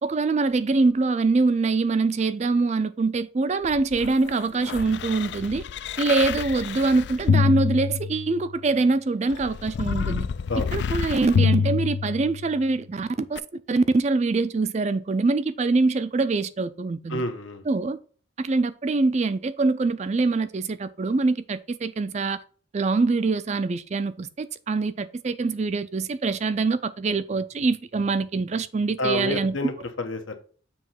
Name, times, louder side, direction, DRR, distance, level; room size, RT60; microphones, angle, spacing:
voice 1, 0.0-5.6 6.0-10.3 10.7-17.2 17.7-18.0 18.4-22.4 22.7-29.6, right 3 dB, 35° right, 0.4 m, -24 dB
sound 1, 3.6-8.6 9.3-12.6 13.4-13.5, left 6 dB, 60° left, 0.3 m, -27 dB
voice 2, 17.1-17.6 29.0-30.3, left 2 dB, 85° left, 1.1 m, -29 dB
7.1 x 3.0 x 5.7 m
head